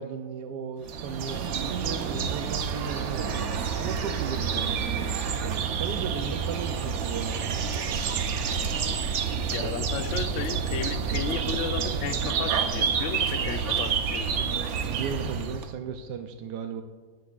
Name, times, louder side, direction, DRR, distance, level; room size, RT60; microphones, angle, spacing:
voice 1, 0.0-3.4 3.8-5.2 5.4-7.6 14.8-16.8, right 6 dB, 90° right, 6 dB, 1.2 m, -36 dB
sound 1, 0.8-15.7, right 6 dB, 60° right, 0.8 m, -29 dB
voice 2, 9.5-14.5, left 8 dB, 70° left, 11 dB, 0.7 m, -34 dB
17.0 x 7.8 x 2.4 m, 1.4 s
omnidirectional pair, 1.8 m